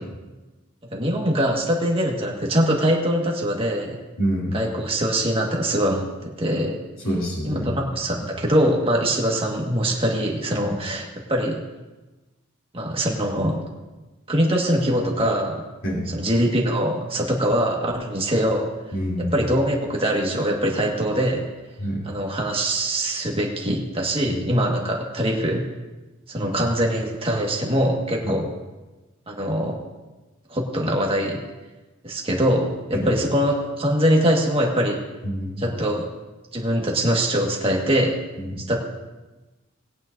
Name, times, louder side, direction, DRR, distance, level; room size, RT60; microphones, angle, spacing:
voice 1, 0.9-4.0 4.5-6.8 7.4-11.6 12.7-13.6 14.3-15.6 16.1-18.7 19.2-21.5 22.0-25.6 26.3-28.5 29.3-29.7 30.5-31.4 32.0-35.0 35.6-36.1 36.5-38.2 38.7-38.8, equal, 25° right, -1 dB, 1.6 m, -23 dB
voice 2, 4.2-4.6 7.0-7.7 8.1-8.2 15.8-16.0 18.9-19.3 21.8-22.0 24.3-24.4 26.4-26.6 32.9-33.1 35.2-35.6 38.4-38.6, equal, 70° left, -5 dB, 2.9 m, -27 dB
20.0 x 9.1 x 2.6 m, 1.2 s
head